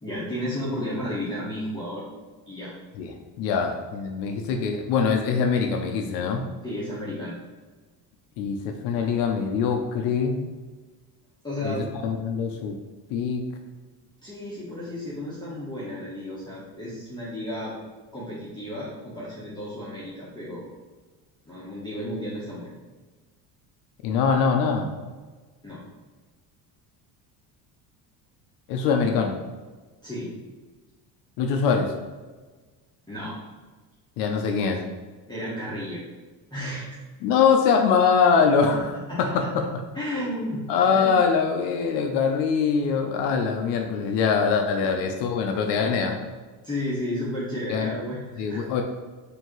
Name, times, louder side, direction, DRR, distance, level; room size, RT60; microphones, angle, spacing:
voice 1, 0.0-2.0 2.5-2.7 6.6-7.4 11.4-11.9 14.2-17.7 18.1-20.7 21.5-22.7 25.6-25.8 30.0-30.4 33.1-33.4 35.3-36.0 36.5-37.0 38.6-38.7 39.1-39.5 39.9-40.6 40.9-41.1 44.8-44.9 46.6-48.6, left 1 dB, 10° left, -9 dB, 0.9 m, -33 dB
voice 2, 3.0-6.4 8.4-10.4 11.6-11.8 12.0-12.8 13.1-13.4 24.0-24.9 28.7-29.3 31.4-31.9 34.2-34.8 37.2-38.8 39.2-39.7 40.7-46.2 47.7-47.9 48.4-48.8, left 6 dB, 70° left, 4 dB, 0.6 m, -23 dB
4.4 x 2.8 x 3.0 m, 1.3 s
cardioid pair, 115°, 42 cm